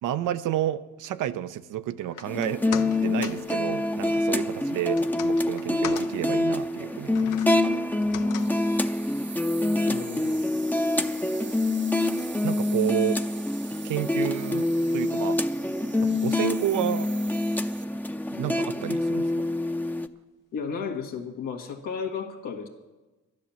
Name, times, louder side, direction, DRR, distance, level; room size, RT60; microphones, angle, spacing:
voice 1, 0.0-2.6 3.0-7.6 12.4-13.2 13.8-14.7 14.9-15.4 16.0-17.1 18.3-19.5, right 12 dB, 75° right, 12 dB, 0.7 m, -30 dB
sound 1, 2.0-14.4 14.7-14.8, left 10 dB, 70° left, 0.7 m, -44 dB
sound 2, 2.3-20.1, left 2 dB, 5° left, 0.7 m, -26 dB
voice 2, 8.1-8.8 9.9-10.4 20.5-22.7, left 6 dB, 85° left, 2 dB, 1.7 m, -34 dB
sound 3, 8.4-17.9, right 7 dB, 35° right, 0.7 m, -44 dB
12.0 x 11.0 x 7.1 m, 1.2 s
supercardioid pair, 65°, 31 cm